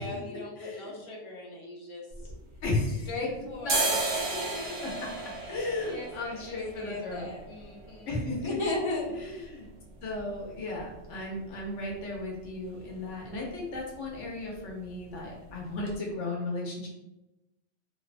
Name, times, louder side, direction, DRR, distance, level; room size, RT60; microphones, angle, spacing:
voice 1, 0.0-2.3 3.1-5.0 5.5-9.1, left 2 dB, 45° left, -2 dB, 0.4 m, -37 dB
voice 2, 0.6-1.0 2.6-3.1 3.5-4.0 5.5-7.3 8.1-8.4 9.1-9.6 10.0-16.9, left 2 dB, 80° left, -2 dB, 1.0 m, -35 dB
sound 1, 2.1-3.2 3.5-11.2 11.5-11.6 11.9-12.5 12.8-13.0 13.3-13.5 13.8-14.5 14.8-15.0 15.5-15.6 15.9-16.0, right 3 dB, 75° right, 0.9 m, -35 dB
2.7 x 2.1 x 2.4 m, 0.97 s
omnidirectional pair, 1.2 m